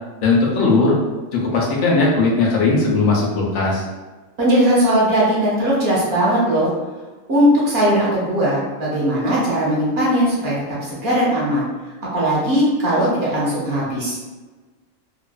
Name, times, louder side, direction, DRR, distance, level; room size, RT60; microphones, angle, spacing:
voice 1, 0.2-0.9 1.5-3.8, left 3 dB, 85° left, -3 dB, 1.1 m, -17 dB
voice 2, 4.4-6.7 7.3-10.5 10.8-11.7 12.1-14.2, equal, 55° right, -6 dB, 1.0 m, -18 dB
2.7 x 2.3 x 2.2 m, 1.3 s
omnidirectional pair, 1.4 m